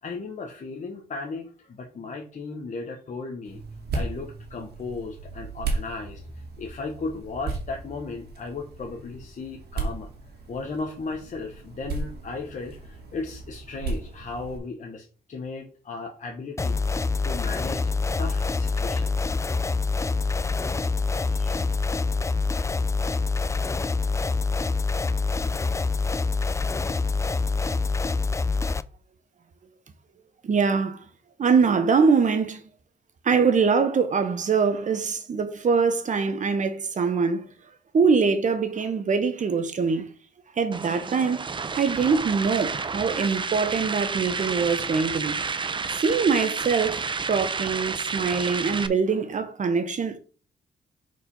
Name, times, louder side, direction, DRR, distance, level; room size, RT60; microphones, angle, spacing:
voice 1, 0.0-3.6 3.9-6.2 6.6-10.1 10.5-16.8 17.2-17.9 18.2-19.3 20.8-21.8, left 3 dB, 50° left, 1.0 m, -36 dB
sound 1, 3.4-14.6, right 3 dB, 80° right, 1.9 m, -35 dB
sound 2, 16.6-28.8, left 4 dB, 20° left, 0.3 m, -26 dB
voice 2, 30.4-31.0 31.4-32.6 33.2-37.5 37.9-40.1 40.6-41.5 41.8-45.4 46.0-50.2, right 5 dB, 50° right, 1.1 m, -23 dB
sound 3, 40.7-48.9, right 5 dB, 30° right, 0.5 m, -30 dB
4.8 x 4.3 x 5.4 m
cardioid pair, 100°, 17 cm